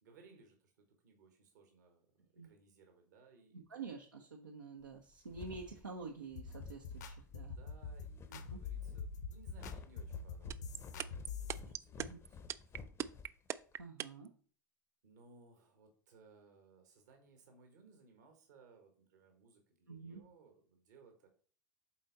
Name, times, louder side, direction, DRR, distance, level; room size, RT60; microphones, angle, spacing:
voice 1, 0.0-3.8 7.3-12.6 12.9-13.0 15.0-21.3, right 4 dB, 65° right, 4 dB, 1.5 m, -64 dB
voice 2, 3.5-7.6 8.3-8.6 12.0-12.2 13.8-14.3 19.9-20.2, right 4 dB, 80° right, 1 dB, 0.9 m, -48 dB
sound 1, 4.9-13.8, left 5 dB, 25° left, 0.7 m, -54 dB
sound 2, 6.4-11.6, left 5 dB, 60° left, 0.9 m, -45 dB
sound 3, 10.5-14.3, right 10 dB, 25° right, 0.3 m, -39 dB
7.5 x 4.2 x 4.1 m, 0.44 s
figure-of-eight pair, 80°, 10 cm